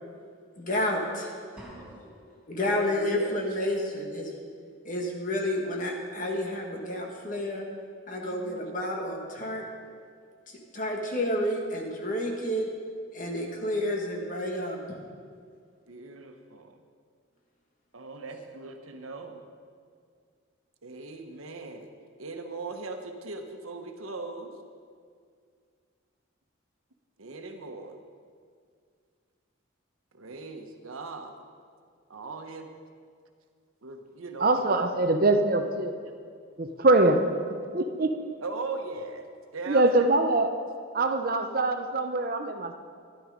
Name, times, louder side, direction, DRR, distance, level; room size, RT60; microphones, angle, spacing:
voice 1, 0.6-1.8 2.5-4.3 4.9-7.6 8.1-9.6 10.5-12.7 13.1-14.8, left 1 dB, 40° left, 0 dB, 1.8 m, -30 dB
sound 1, 1.6-2.5, right 1 dB, 5° right, 2.2 m, -48 dB
voice 2, 2.6-3.4 8.2-8.7 15.9-16.8 17.9-19.5 20.8-21.9 22.2-24.5 27.2-28.0 30.1-31.3 32.1-32.7 33.8-34.8 38.4-39.3 39.5-39.8, right 3 dB, 90° right, 5 dB, 1.2 m, -39 dB
voice 3, 34.4-35.9 36.6-38.2 39.7-40.6 40.9-42.7, right 2 dB, 45° right, 7 dB, 0.7 m, -24 dB
12.5 x 11.5 x 5.1 m, 2.2 s
head